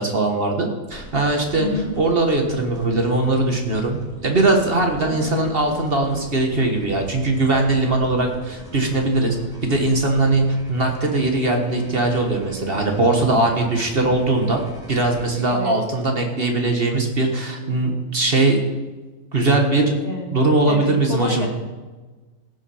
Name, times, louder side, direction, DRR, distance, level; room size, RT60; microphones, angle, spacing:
voice 1, 0.0-1.7 2.0-4.0 4.2-9.4 9.6-14.6 14.9-18.6 19.3-19.9 20.3-21.5, right 2 dB, 45° right, 3 dB, 1.6 m, -20 dB
sound 1, 0.9-15.3, right 2 dB, 5° right, 2.7 m, -41 dB
voice 2, 1.5-1.9 5.0-5.2 15.5-15.7 20.0-20.4 20.7-21.5, left 2 dB, 50° left, 0 dB, 2.4 m, -28 dB
16.5 x 7.4 x 5.5 m, 1.3 s
omnidirectional pair, 1.4 m